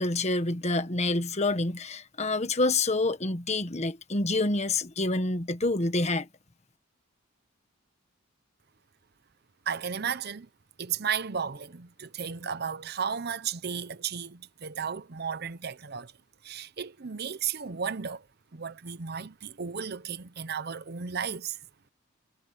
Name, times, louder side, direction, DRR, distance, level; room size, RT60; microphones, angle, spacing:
voice 1, 0.0-6.3, left 2 dB, 30° left, 1.4 m, -27 dB
voice 2, 9.7-10.5 10.8-16.1 16.4-18.3 18.5-21.6, right 7 dB, 50° right, 0.8 m, -34 dB
head